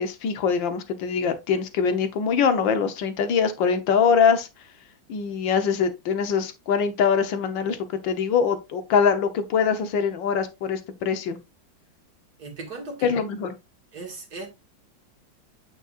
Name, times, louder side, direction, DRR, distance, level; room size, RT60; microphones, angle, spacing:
voice 1, 0.0-4.5 5.1-7.8 8.0-11.4 13.0-13.5, left 6 dB, 80° left, 1.7 m, -23 dB
voice 2, 12.4-13.2 13.9-14.5, right 3 dB, 55° right, 2.5 m, -37 dB
9.1 x 5.3 x 2.5 m
omnidirectional pair, 2.0 m